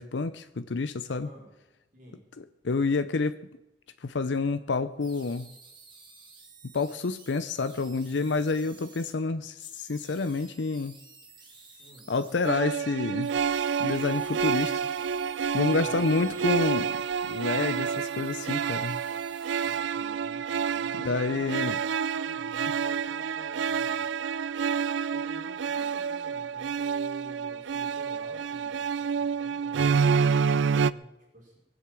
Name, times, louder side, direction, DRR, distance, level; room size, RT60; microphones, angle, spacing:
voice 1, 0.0-1.3 2.4-3.4 4.0-5.5 6.7-11.0 12.1-13.3 13.8-14.8 15.5-17.0 17.3-19.0 21.0-21.8, left 4 dB, 80° left, 12 dB, 0.6 m, -28 dB
voice 2, 1.2-1.5 1.9-2.2 11.8-12.1 15.8-16.5 19.6-21.6 22.1-24.0 25.1-31.6, equal, 45° right, -3 dB, 4.9 m, -51 dB
sound 1, 5.0-9.1 9.6-12.5 13.2-19.8, right 3 dB, 25° right, 3.2 m, -53 dB
sound 2, 12.4-30.9, right 6 dB, 90° right, 0.4 m, -28 dB
21.5 x 8.0 x 7.5 m, 0.97 s
head